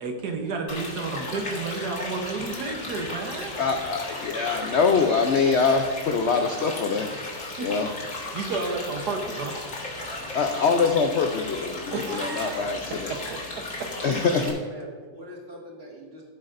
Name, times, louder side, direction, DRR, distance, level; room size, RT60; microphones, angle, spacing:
voice 1, 0.0-3.6 6.3-6.5 7.6-7.7 8.3-9.5 11.9-13.4, right 3 dB, 70° right, 4 dB, 1.5 m, -31 dB
sound 1, 0.7-14.5, left 2 dB, 45° left, 1.9 m, -35 dB
voice 2, 3.6-7.1 7.6-7.9 10.3-13.1 14.0-14.4, left 5 dB, 75° left, 5 dB, 0.6 m, -24 dB
voice 3, 13.9-16.3, right 1 dB, 35° right, -2 dB, 2.1 m, -41 dB
15.0 x 8.0 x 2.5 m, 1.5 s
omnidirectional pair, 1.9 m